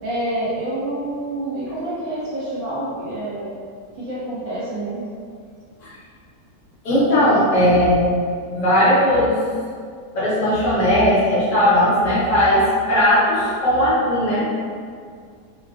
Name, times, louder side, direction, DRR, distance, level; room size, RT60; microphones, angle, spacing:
voice 1, 0.0-3.4 4.0-5.1, right 1 dB, 65° right, -10 dB, 1.3 m, -27 dB
voice 2, 6.8-8.1 8.5-9.4 10.1-12.6 12.9-14.4, equal, 60° left, -10 dB, 1.2 m, -17 dB
3.0 x 2.3 x 2.3 m, 2.1 s
omnidirectional pair, 1.7 m